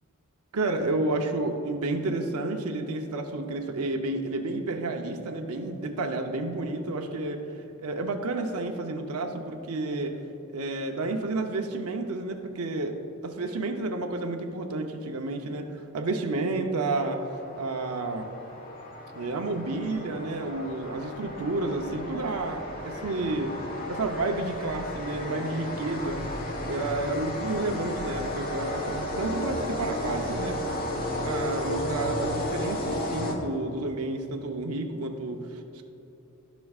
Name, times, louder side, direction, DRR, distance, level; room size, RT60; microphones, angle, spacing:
voice 1, 0.5-7.5 7.8-10.2 10.5-12.9 13.2-17.2 17.6-18.3 19.1-23.5 23.9-30.6 30.9-35.8, right 2 dB, 90° right, 4 dB, 0.7 m, -31 dB
sound 1, 17.0-33.8, left 1 dB, 40° left, 1.2 m, -34 dB
14.5 x 6.1 x 2.4 m, 2.9 s
head